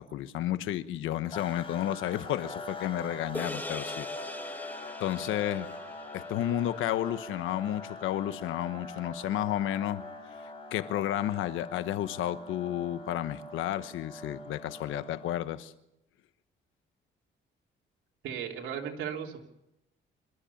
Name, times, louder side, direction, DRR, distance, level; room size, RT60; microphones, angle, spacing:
voice 1, 0.0-4.1 4.3-4.4 5.0-5.7 6.1-10.0 10.7-15.7, left 12 dB, 90° left, 12 dB, 1.1 m, -32 dB
sound 1, 1.3-15.5, left 2 dB, 25° left, 7.8 m, -43 dB
sound 2, 3.3-7.9, left 1 dB, 10° left, 1.6 m, -43 dB
voice 2, 18.2-19.4, right 8 dB, 85° right, 0 dB, 3.3 m, -36 dB
27.0 x 13.5 x 7.2 m, 0.84 s
cardioid pair, 90°, 20 cm